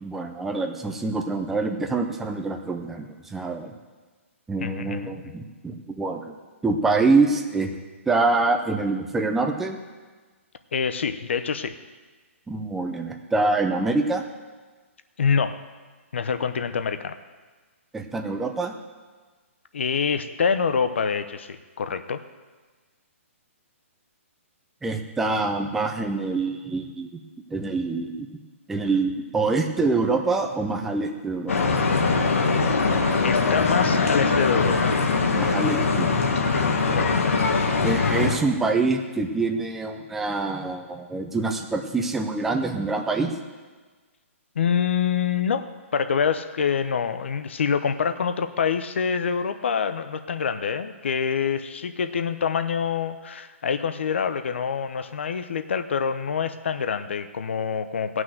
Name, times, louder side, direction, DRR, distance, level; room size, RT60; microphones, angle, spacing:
voice 1, 0.0-3.7 4.5-6.3 6.6-7.7 8.1-9.8 12.5-14.2 17.9-18.7 24.8-27.2 27.5-28.3 28.7-31.7 35.3-36.1 37.8-43.3, right 3 dB, 5° right, 4 dB, 0.5 m, -25 dB
voice 2, 4.6-5.1 10.7-11.8 15.2-15.6 16.1-17.2 19.7-22.2 33.2-34.9 36.9-37.4 44.5-45.7 45.9-58.2, left 6 dB, 55° left, 10 dB, 0.9 m, -26 dB
sound 1, 31.5-38.4, left 4 dB, 75° left, 1.8 m, -22 dB
18.0 x 6.3 x 7.7 m, 1.4 s
hypercardioid pair, 180°, 7 cm